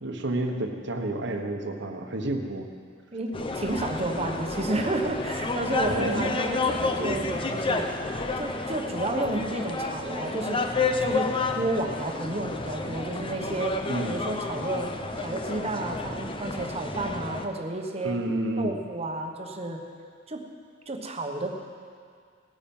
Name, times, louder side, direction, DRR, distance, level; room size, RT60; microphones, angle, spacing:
voice 1, 0.0-2.7 5.8-6.3 13.9-14.1 18.0-18.8, right 1 dB, 65° right, 4 dB, 1.2 m, -30 dB
voice 2, 3.1-7.9 8.4-10.6 11.0-11.3 11.5-13.8 14.0-18.2 18.6-19.8 20.3-20.4 20.9-21.5, right 2 dB, 30° right, 3 dB, 1.2 m, -31 dB
sound 1, 3.3-17.4, left 3 dB, 25° left, 0.7 m, -30 dB
18.0 x 8.9 x 5.5 m, 2.1 s
head